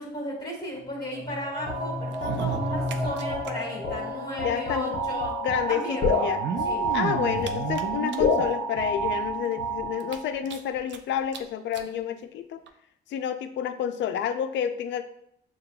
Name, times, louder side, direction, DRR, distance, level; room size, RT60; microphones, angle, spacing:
voice 1, 0.0-5.3 5.7-6.3 6.6-6.8, left 1 dB, 25° left, -5 dB, 1.4 m, -35 dB
sound 1, 0.8-4.8, equal, ahead, 0.6 m, -35 dB
sound 2, 1.7-10.4, left 1 dB, 45° left, 0.8 m, -29 dB
sound 3, 2.1-3.5 3.8-3.9 4.1-4.2 5.2-5.3 6.2-8.5 9.1-9.2 9.5-9.6 10.0-11.0 11.3-11.4 11.7-11.9 12.7-12.8, right 7 dB, 65° right, 0.4 m, -33 dB
voice 2, 4.4-5.0 5.4-6.4 6.9-12.6 13.1-15.0, left 9 dB, 70° left, 10 dB, 0.4 m, -29 dB
6.5 x 2.3 x 2.2 m, 0.73 s
cardioid pair, 90°, 20 cm